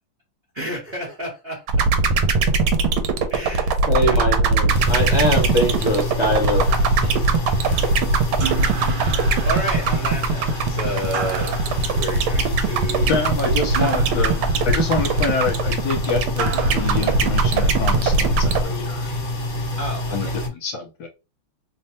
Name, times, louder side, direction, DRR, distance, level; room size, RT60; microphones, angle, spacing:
voice 1, 0.5-2.2 3.3-4.3 7.0-7.4 8.8-13.2 19.8-20.4, equal, 40° right, 0.9 m, -31 dB
sound 1, 1.7-18.6, right 4 dB, 85° right, 1.5 m, -19 dB
voice 2, 3.9-6.6, left 1 dB, 25° left, 1.0 m, -22 dB
sound 2, 4.7-20.5, left 2 dB, 45° left, 1.5 m, -28 dB
sound 3, 6.7-18.0, right 6 dB, 60° right, 1.4 m, -35 dB
voice 3, 13.1-14.4 14.6-19.1 20.1-20.3 20.6-21.1, left 4 dB, 70° left, 1.3 m, -26 dB
3.5 x 2.1 x 4.1 m
omnidirectional pair, 2.4 m